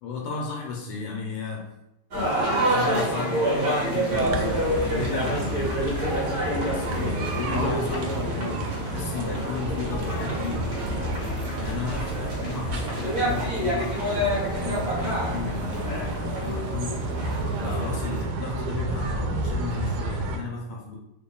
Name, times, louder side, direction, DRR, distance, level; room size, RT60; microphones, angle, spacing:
voice 1, 0.0-1.7 2.5-6.2 6.7-11.1 11.6-17.1 17.5-21.0, left 4 dB, 80° left, -1 dB, 1.4 m, -34 dB
sound 1, 2.1-18.2, equal, 55° right, 1.2 m, -28 dB
sound 2, 4.1-20.4, right 1 dB, 80° right, 1.3 m, -31 dB
3.5 x 2.1 x 3.7 m, 0.86 s
omnidirectional pair, 2.3 m